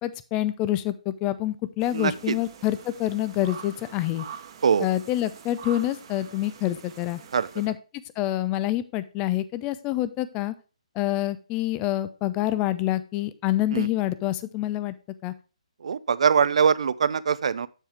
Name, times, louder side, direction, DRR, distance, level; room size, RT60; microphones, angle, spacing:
voice 1, 0.0-4.3 4.8-7.2 7.6-7.8 8.2-10.5 11.0-14.9 15.2-15.3, left 14 dB, 20° left, 0.5 m, -27 dB
sound 1, 1.8-7.7, right 7 dB, 40° right, 1.2 m, -45 dB
voice 2, 1.9-2.4 4.6-4.9 7.3-7.5 13.7-13.9 15.8-17.7, right 6 dB, 60° right, 0.5 m, -22 dB
7.3 x 7.2 x 3.4 m
figure-of-eight pair, 145°, 4 cm